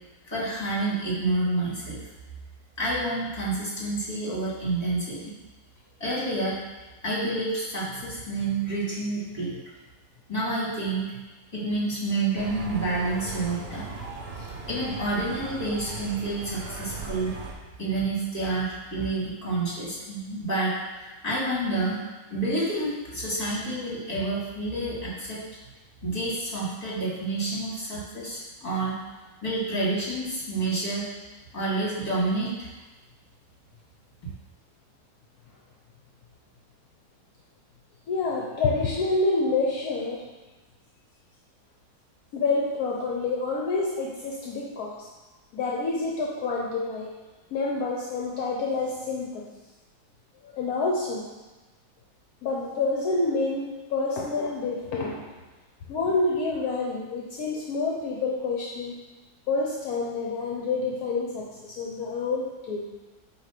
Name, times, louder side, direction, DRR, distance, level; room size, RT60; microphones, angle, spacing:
voice 1, 0.3-2.0 2.8-5.3 6.0-6.6 7.0-9.5 10.3-11.2 11.5-13.9 14.4-17.4 17.8-20.8 21.0-22.0 22.3-25.4 26.0-29.0 29.4-31.1 31.5-32.7, right 2 dB, 25° left, -7 dB, 2.2 m, -29 dB
sound 1, 12.4-17.5, right 4 dB, 50° right, 0.8 m, -38 dB
voice 2, 38.1-40.2 42.3-45.1 45.5-47.1 47.5-49.5 50.4-51.3 52.4-55.2 55.9-59.0 59.5-62.9, left 3 dB, 70° left, -2 dB, 1.2 m, -28 dB
7.9 x 2.9 x 5.8 m, 1.2 s
omnidirectional pair, 1.7 m